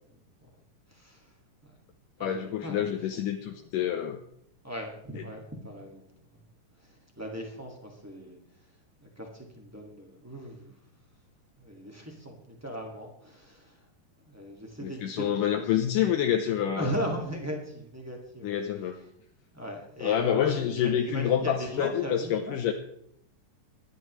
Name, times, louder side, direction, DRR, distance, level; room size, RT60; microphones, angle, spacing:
voice 1, 0.9-1.3 1.6-1.7 2.2-3.0 3.5-3.6 4.6-6.4 6.7-8.7 9.0-10.8 11.6-13.9 14.3-16.1 16.7-18.6 19.5-22.6, equal, 10° right, 0 dB, 1.0 m, -38 dB
voice 2, 2.2-4.2 14.8-16.9 18.4-19.0 20.0-22.7, left 9 dB, 80° left, 4 dB, 2.3 m, -27 dB
23.0 x 10.5 x 3.1 m, 0.70 s
omnidirectional pair, 3.9 m